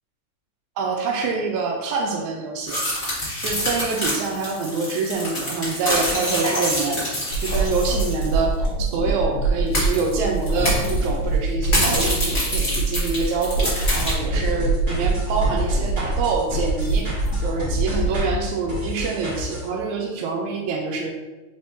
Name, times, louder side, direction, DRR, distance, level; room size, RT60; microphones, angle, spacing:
voice 1, 0.8-2.8 3.4-8.5 8.8-17.1 17.4-21.1, right 4 dB, 85° right, 1 dB, 1.9 m, -26 dB
sound 1, 2.7-8.3 8.6-8.7 9.7-10.1 10.5-11.1 11.6-14.1, equal, 55° left, 0.6 m, -26 dB
sound 2, 7.3-18.2, right 2 dB, 85° left, 1.0 m, -24 dB
sound 3, 13.8-19.7, left 1 dB, 60° right, 0.5 m, -31 dB
4.6 x 3.5 x 2.6 m, 1.2 s
omnidirectional pair, 3.3 m